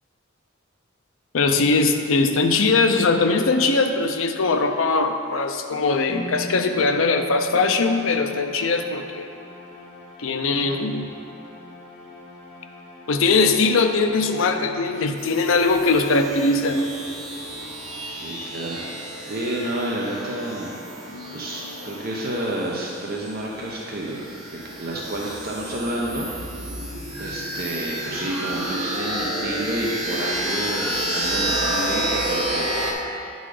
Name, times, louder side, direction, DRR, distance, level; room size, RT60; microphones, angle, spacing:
voice 1, 1.3-9.3 10.2-11.1 13.1-16.9, left 3 dB, 70° left, 6 dB, 0.5 m, -21 dB
sound 1, 6.1-22.8, left 2 dB, 30° left, 1.6 m, -42 dB
sound 2, 15.2-32.9, right 1 dB, 85° right, 1.3 m, -30 dB
voice 2, 18.0-18.8 19.2-20.8 21.3-26.5 27.2-33.3, right 1 dB, 45° right, -3 dB, 0.7 m, -30 dB
9.7 x 3.9 x 4.9 m, 2.4 s
head